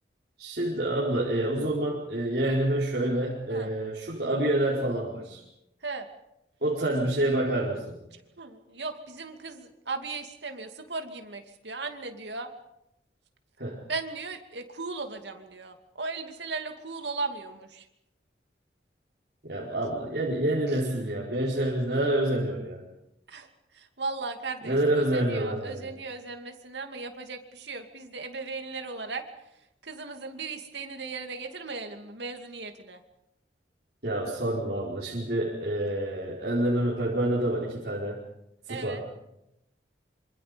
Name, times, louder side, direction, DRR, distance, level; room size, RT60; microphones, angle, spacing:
voice 1, 0.4-5.4 6.6-8.0 13.6-13.8 19.4-22.8 24.6-25.9 34.0-38.2 38.7-39.0, right 1 dB, 60° right, -6 dB, 4.8 m, -27 dB
voice 2, 8.1-12.5 13.9-17.9 23.3-23.5 23.7-24.8 25.1-29.2 29.8-33.0 38.7-39.0, right 3 dB, 75° right, 5 dB, 2.6 m, -37 dB
26.5 x 26.0 x 5.3 m, 0.84 s
head